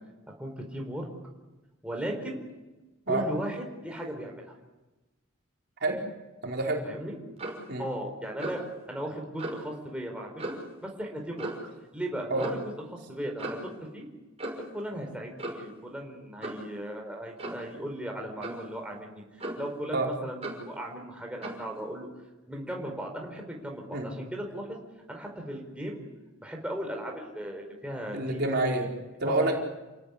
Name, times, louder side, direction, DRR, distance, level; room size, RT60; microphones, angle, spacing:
voice 1, 0.4-1.1 1.8-2.4 3.1-4.5 6.8-7.2 7.8-8.6 8.9-10.5 10.8-12.6 12.9-14.1 14.7-19.2 19.6-22.1 22.5-24.8 25.1-26.0 26.4-28.4, right 1 dB, 5° right, 1 dB, 4.8 m, -37 dB
voice 2, 6.4-6.8 7.7-7.9 12.3-12.4 19.9-20.1 23.9-24.1 28.1-28.9 29.2-29.6, right 2 dB, 50° right, 0 dB, 4.5 m, -27 dB
Clock, 7.4-7.7 8.4-8.7 9.4-9.6 10.4-10.7 11.4-11.7 12.4-12.6 13.4-13.7 14.4-14.7 15.4-15.7 16.4-16.7 17.4-17.7 18.4-18.7 19.4-19.8 20.4-20.7 21.4-21.7, right 1 dB, 30° right, 5.9 m, -37 dB
29.0 x 18.5 x 9.9 m, 1.1 s
head